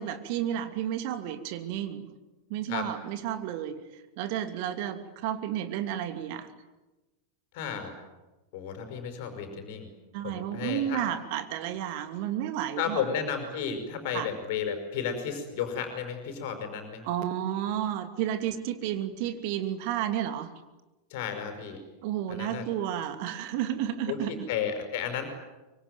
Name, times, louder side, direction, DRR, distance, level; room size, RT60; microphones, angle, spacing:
voice 1, 0.0-2.1 2.5-6.5 10.1-13.0 14.1-14.3 17.0-20.5 22.0-24.3, right 11 dB, 45° right, 8 dB, 2.8 m, -32 dB
voice 2, 7.5-7.9 8.5-9.9 10.2-11.0 12.8-17.0 21.1-21.8 22.3-22.6 24.1-25.3, left 7 dB, 50° left, 7 dB, 5.6 m, -33 dB
25.0 x 24.0 x 9.4 m, 1.1 s
figure-of-eight pair, 90°, 0 cm